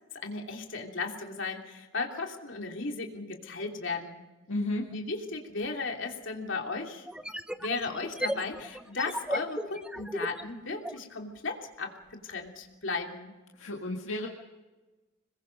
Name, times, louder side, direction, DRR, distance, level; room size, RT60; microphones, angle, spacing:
voice 1, 0.2-4.2 4.9-7.1 7.6-11.9 12.2-13.3, left 3 dB, 70° left, 2 dB, 3.0 m, -35 dB
voice 2, 4.5-4.9 13.6-14.3, left 1 dB, 85° left, 0 dB, 1.9 m, -32 dB
sound 1, 5.6-5.7 7.0-11.0, right 1 dB, 5° right, 0.6 m, -36 dB
26.5 x 21.0 x 5.3 m, 1.1 s
head